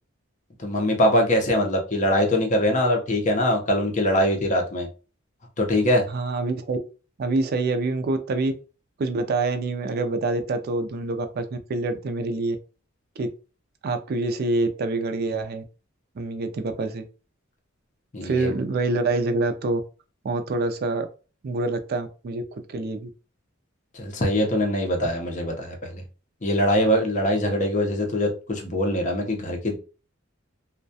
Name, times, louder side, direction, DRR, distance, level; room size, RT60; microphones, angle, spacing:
voice 1, 0.6-4.9 5.6-6.0 18.1-18.5 23.9-26.0 26.4-29.8, left 1 dB, 40° left, 2 dB, 0.6 m, -23 dB
voice 2, 6.1-6.8 7.2-8.5 9.0-12.6 13.2-13.3 13.8-15.6 16.2-17.0 18.2-19.8 20.2-21.1 21.4-22.4 22.7-23.1, right 3 dB, 50° right, 8 dB, 0.4 m, -26 dB
2.3 x 2.1 x 2.6 m, 0.35 s
head